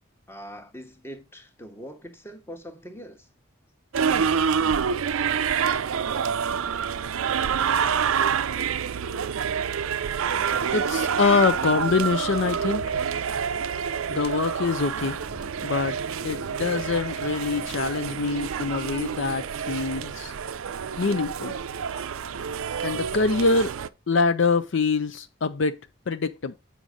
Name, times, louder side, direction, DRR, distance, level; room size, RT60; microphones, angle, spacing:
voice 1, 0.3-3.2, equal, 10° left, 1.0 m, -42 dB
sound 1, 3.9-23.9, right 7 dB, 80° right, 0.5 m, -27 dB
voice 2, 10.7-13.0 14.1-15.2 15.6-16.0 16.2-20.3 21.0-21.5 22.8-23.7 24.1-25.8 26.1-26.6, left 4 dB, 60° left, 0.5 m, -24 dB
7.9 x 5.0 x 5.0 m
head